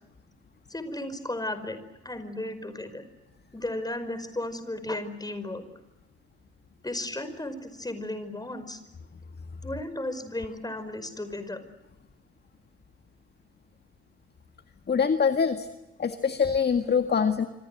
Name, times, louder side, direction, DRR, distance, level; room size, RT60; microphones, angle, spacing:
voice 1, 0.7-1.8 2.0-3.0 3.5-5.6 6.8-8.8 9.6-11.6, left 1 dB, 10° left, 11 dB, 5.4 m, -34 dB
voice 2, 14.9-15.7 16.0-17.5, left 6 dB, 30° left, 8 dB, 1.9 m, -24 dB
27.0 x 26.0 x 8.0 m, 1.0 s
hypercardioid pair, 55°, 34 cm